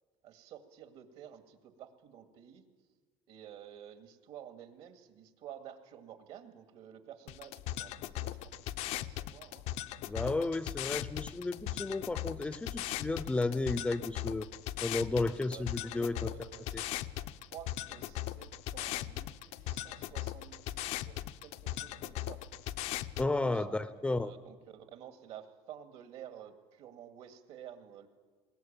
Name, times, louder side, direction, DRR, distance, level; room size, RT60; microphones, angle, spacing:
voice 1, 0.2-2.6 3.3-9.6 15.5-15.6 16.0-16.8 17.2-22.4 23.4-28.1, right 10 dB, 65° right, 8 dB, 2.2 m, -51 dB
sound 1, 7.3-23.3, left 14 dB, 70° left, 0.7 m, -39 dB
voice 2, 10.0-14.5 14.8-16.3 16.7-16.8 23.2-24.3, left 2 dB, 10° left, 15 dB, 0.6 m, -33 dB
21.0 x 18.5 x 9.0 m, 1.4 s
cardioid pair, 145°, 11 cm